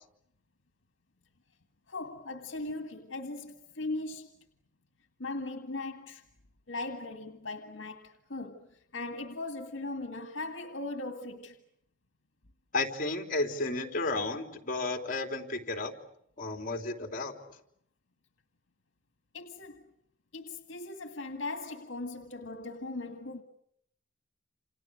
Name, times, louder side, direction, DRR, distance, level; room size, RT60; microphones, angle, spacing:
voice 1, 1.9-4.3 5.2-6.2 6.7-8.7 8.9-11.6 19.3-19.9 20.3-23.4, left 2 dB, 75° left, 2.0 m, -39 dB
voice 2, 12.7-15.9 16.4-17.3, left 2 dB, 45° left, 3.5 m, -32 dB
29.0 x 28.0 x 6.4 m
head